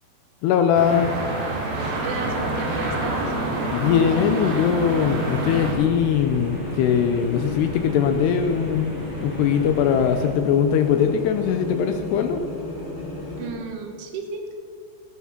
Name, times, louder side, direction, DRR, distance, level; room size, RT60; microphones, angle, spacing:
voice 1, 0.4-1.1 3.7-12.4, left 8 dB, 85° left, 7 dB, 2.3 m, -21 dB
sound 1, 0.7-5.8, right 2 dB, 55° right, 4.1 m, -27 dB
sound 2, 2.0-13.5, left 2 dB, 15° left, 3.5 m, -34 dB
voice 2, 2.0-3.3 13.4-14.6, right 4 dB, 70° right, 3 dB, 4.3 m, -33 dB
sound 3, 5.3-10.3, left 1 dB, 20° right, 4.6 m, -36 dB
18.0 x 11.0 x 5.9 m, 2.1 s
omnidirectional pair, 5.8 m